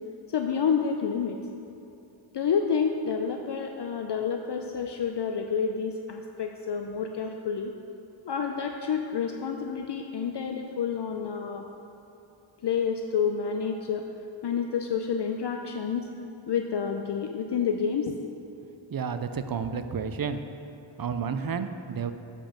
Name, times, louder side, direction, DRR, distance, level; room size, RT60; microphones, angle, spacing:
voice 1, 0.3-1.4 2.3-7.7 8.2-11.6 12.6-14.0 14.4-16.1 16.5-18.1, left 6 dB, 55° left, 4 dB, 0.6 m, -29 dB
voice 2, 18.9-20.4 21.0-22.1, right 6 dB, 45° right, 9 dB, 0.6 m, -31 dB
7.5 x 5.4 x 7.2 m, 2.9 s
cardioid pair, 50°, 50 cm